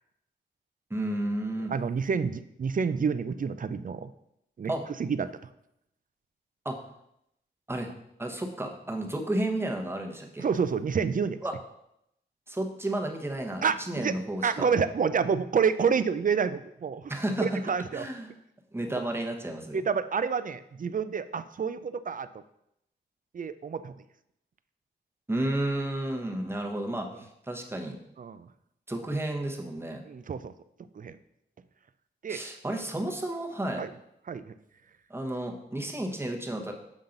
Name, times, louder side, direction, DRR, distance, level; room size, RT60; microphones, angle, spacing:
voice 1, 0.9-1.7 4.7-4.8 6.6-6.8 7.7-7.9 8.2-10.4 11.4-11.5 12.5-14.7 17.1-18.3 18.7-19.8 25.3-28.0 28.9-30.0 32.3-33.8 35.1-36.7, right 1 dB, 10° right, 2 dB, 0.9 m, -32 dB
voice 2, 1.7-4.1 4.6-4.7 5.0-5.3 10.4-11.4 13.6-14.1 14.4-17.1 17.4-18.0 19.7-22.3 23.3-23.9 28.2-28.5 30.0-30.5 31.0-31.2 32.2-32.4 33.8-33.9 34.3-34.5, right 6 dB, 45° right, 13 dB, 0.4 m, -28 dB
7.2 x 5.5 x 3.8 m, 0.79 s
wide cardioid pair, 120°, 19 cm